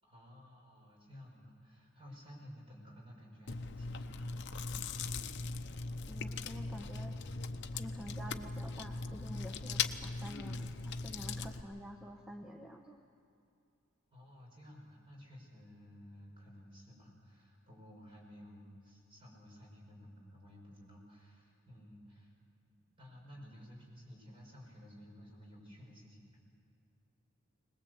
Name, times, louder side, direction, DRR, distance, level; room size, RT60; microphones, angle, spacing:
voice 1, 0.0-5.1 14.1-22.3 23.0-26.4, equal, 25° right, -2 dB, 5.7 m, -54 dB
Chewing mastication, 3.5-11.6, left 4 dB, 55° left, 0.8 m, -39 dB
voice 2, 6.1-7.2 7.7-13.0, equal, 5° right, 1 dB, 1.0 m, -48 dB
21.0 x 20.5 x 8.0 m, 2.6 s
head